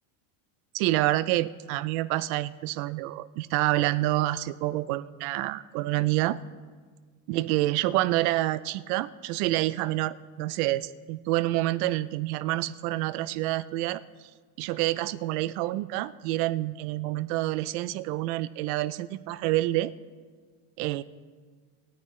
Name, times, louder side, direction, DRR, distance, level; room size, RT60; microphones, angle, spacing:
voice 1, 0.7-6.4 7.3-14.0 14.6-19.9 20.8-21.0, right 16 dB, 75° right, 16 dB, 0.6 m, -27 dB
20.5 x 9.4 x 3.2 m, 1.5 s
cardioid pair, 160°, 43 cm